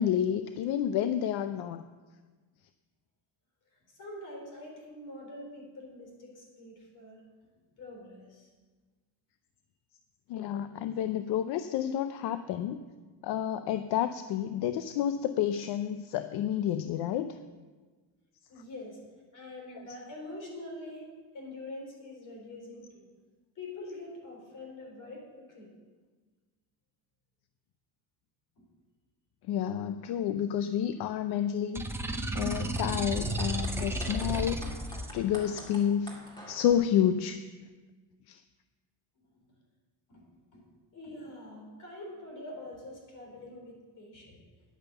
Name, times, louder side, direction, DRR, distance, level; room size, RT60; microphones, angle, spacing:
voice 1, 0.0-1.8 10.3-12.8 13.2-17.4 29.5-31.8 32.3-34.7 35.1-36.1 36.5-37.5 38.3-38.4, left 10 dB, 75° left, 11 dB, 0.6 m, -30 dB
voice 2, 4.0-7.2 7.8-8.5 18.5-19.0 19.3-23.1 23.6-25.3 25.5-25.7 40.1-40.2 40.5-40.6 40.9-44.4, left 1 dB, 50° left, 0 dB, 4.1 m, -45 dB
sound 1, 31.7-35.1, right 1 dB, 5° right, 0.6 m, -33 dB
sound 2, 32.4-36.8, right 1 dB, 10° left, 2.1 m, -45 dB
10.5 x 8.9 x 6.9 m, 1.3 s
cardioid pair, 155°, 40 cm